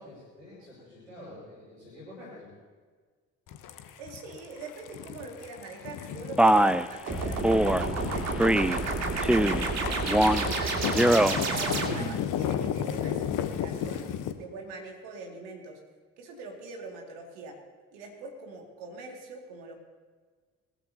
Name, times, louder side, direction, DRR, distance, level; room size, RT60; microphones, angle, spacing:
voice 1, 0.0-2.5, left 1 dB, 90° left, -12 dB, 5.0 m, -47 dB
sound 1, 3.5-14.3, left 9 dB, 55° left, 1.1 m, -34 dB
voice 2, 4.0-8.8 9.1-14.1 14.4-15.8 16.2-17.6 17.9-19.7, right 3 dB, 70° right, 1 dB, 2.5 m, -43 dB
Male speech man speaking, 6.4-6.8 7.4-7.8 8.4-8.8 9.2-9.7 10.1-10.5 10.9-11.4, right 1 dB, 5° right, 0.6 m, -22 dB
sound 2, 7.1-12.3, right 3 dB, 45° right, 2.5 m, -30 dB
21.5 x 14.0 x 2.9 m, 1.5 s
figure-of-eight pair, 45°, 38 cm